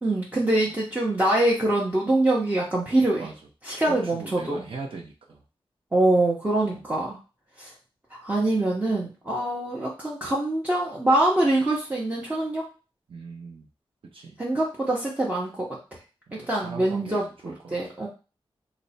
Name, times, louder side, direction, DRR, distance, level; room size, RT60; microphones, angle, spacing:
voice 1, 0.0-3.3 3.6-4.6 5.9-7.2 7.6-7.7 8.1-12.7 14.4-15.7 16.3-18.1, right 1 dB, 15° right, -5 dB, 0.6 m, -24 dB
voice 2, 3.9-5.4 6.6-6.8 13.1-13.7 14.1-14.4 16.3-17.7, right 4 dB, 70° right, -1 dB, 0.7 m, -40 dB
3.2 x 2.1 x 4.0 m, 0.33 s
wide cardioid pair, 140°, 10 cm